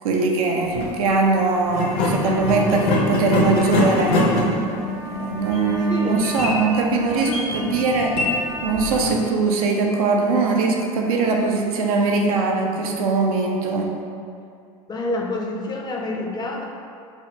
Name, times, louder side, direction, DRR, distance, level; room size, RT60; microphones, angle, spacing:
voice 1, 0.0-4.2 5.0-8.3 8.6-13.9, right 3 dB, 80° right, 0 dB, 0.4 m, -21 dB
sound 1, 0.6-0.9 1.7-9.2, left 2 dB, 60° left, 0.6 m, -24 dB
Trumpet, 0.9-8.9, equal, 60° right, 0.9 m, -38 dB
voice 2, 5.9-6.2 7.2-7.7 14.9-16.6, left 2 dB, 25° left, 0 dB, 0.4 m, -28 dB
3.5 x 2.0 x 2.6 m, 2.4 s
hypercardioid pair, 80°, 18 cm